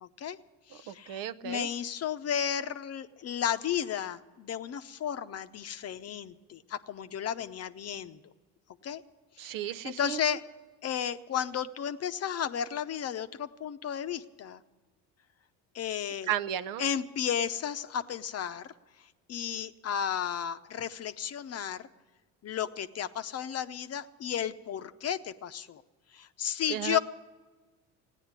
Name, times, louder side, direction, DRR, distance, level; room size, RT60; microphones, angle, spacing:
voice 1, 0.0-0.4 0.7-8.2 8.8-9.0 9.4-9.5 9.8-10.4 10.8-14.6 15.7-16.3 16.8-18.7 19.3-21.8 22.4-25.8 26.1-27.0, left 9 dB, 45° left, 11 dB, 0.7 m, -33 dB
voice 2, 0.9-1.7 9.4-10.2 16.3-16.9 26.7-27.0, right 11 dB, 65° right, 13 dB, 0.7 m, -34 dB
16.0 x 9.9 x 8.1 m, 1.3 s
supercardioid pair, 85°, 36 cm